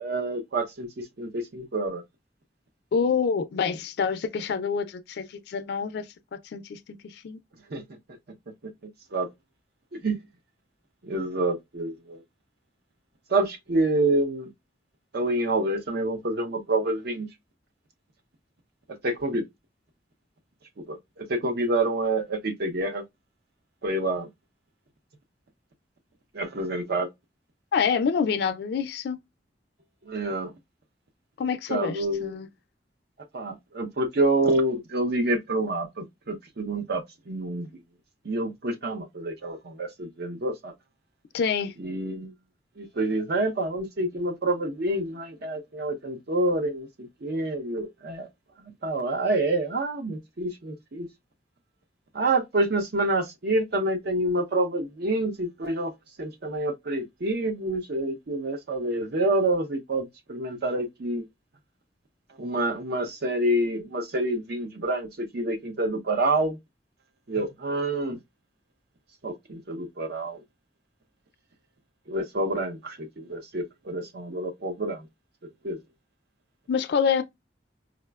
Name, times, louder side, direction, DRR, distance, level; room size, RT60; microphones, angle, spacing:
voice 1, 0.0-2.0 7.7-7.8 9.1-9.3 9.9-10.2 11.0-12.2 13.3-14.5 15.1-17.3 19.0-19.4 20.9-23.0 23.8-24.3 26.3-27.1 30.0-30.5 31.7-32.3 33.3-37.7 38.2-40.7 41.8-42.3 42.8-48.3 48.6-51.1 52.1-55.9 56.2-61.2 62.4-66.6 67.3-68.2 69.2-70.4 72.1-75.0 75.6-75.8, right 2 dB, 60° right, 0.6 m, -27 dB
voice 2, 2.9-6.1 6.4-7.4 27.7-29.2 31.4-32.5 41.3-41.7 76.7-77.2, left 6 dB, 65° left, 0.3 m, -27 dB
4.8 x 2.1 x 2.2 m
head